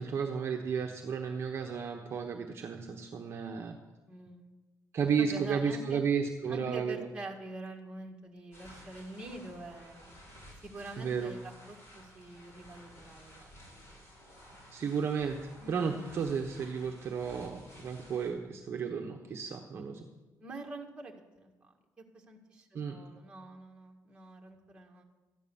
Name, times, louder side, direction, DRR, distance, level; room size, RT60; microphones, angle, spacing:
voice 1, 0.0-3.8 4.9-7.1 11.0-11.3 14.7-20.1 22.7-23.0, right 6 dB, 40° right, 3 dB, 1.0 m, -33 dB
voice 2, 4.1-4.5 5.2-6.0 6.5-10.1 10.6-14.0 15.6-16.0 20.4-25.0, right 2 dB, 15° right, 1 dB, 1.8 m, -46 dB
sound 1, 8.5-18.3, equal, 40° left, 5.8 m, -54 dB
13.5 x 10.0 x 7.1 m, 1.2 s
cardioid pair, 155°, 7 cm